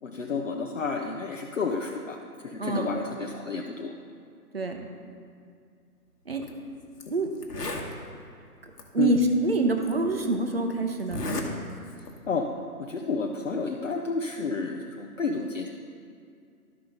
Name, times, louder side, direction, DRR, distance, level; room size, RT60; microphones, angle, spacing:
voice 1, 0.0-2.2 2.4-4.0 9.0-9.2 12.3-12.5 12.8-15.7, left 4 dB, 55° left, 1 dB, 0.7 m, -30 dB
voice 2, 2.6-2.9 4.5-4.8 6.3-6.4 7.1-7.3 8.9-11.3, right 2 dB, 40° right, 4 dB, 0.8 m, -26 dB
Zipper (clothing), 6.3-6.5 7.0-7.1 7.4-7.9 8.8-8.9 9.8-9.9 11.0-11.5 11.8-12.2, left 2 dB, 80° left, 1.4 m, -33 dB
12.5 x 5.7 x 3.8 m, 2.3 s
figure-of-eight pair, 165°, 47 cm